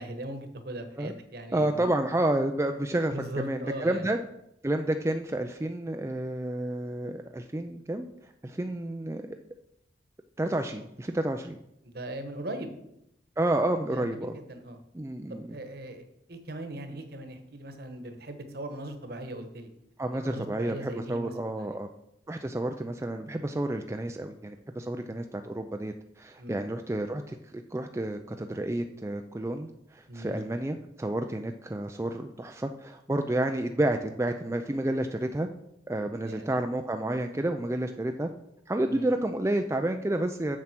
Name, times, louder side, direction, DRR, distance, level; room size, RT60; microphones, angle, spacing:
voice 1, 0.0-1.9 3.1-4.0 11.8-12.7 13.9-14.8 15.3-16.0 16.3-19.7 20.1-21.8 26.4-26.6 30.1-30.4 36.2-36.6 38.9-39.1, right 1 dB, 55° right, 6 dB, 1.3 m, -39 dB
voice 2, 1.5-3.1 3.4-4.2 4.6-8.1 8.4-9.3 10.4-11.6 13.4-14.4 14.9-15.6 20.0-21.9 22.3-35.5 35.9-38.3 38.7-40.6, right 1 dB, 15° right, 5 dB, 0.4 m, -30 dB
7.6 x 7.2 x 5.9 m, 0.80 s
head